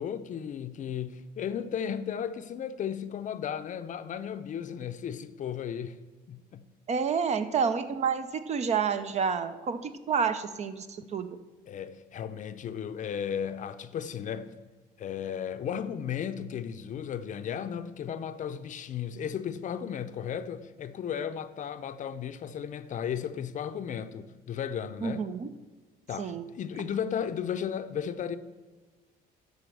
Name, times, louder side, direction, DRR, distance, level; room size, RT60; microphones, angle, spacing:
voice 1, 0.0-6.0 6.3-6.6 11.7-14.5 15.0-25.2 26.1-28.4, left 8 dB, 50° left, 0.6 m, -35 dB
voice 2, 6.9-11.3 25.0-25.5 26.2-26.4, right 6 dB, 40° right, 0.7 m, -29 dB
11.5 x 4.2 x 6.8 m
cardioid pair, 110°, 17 cm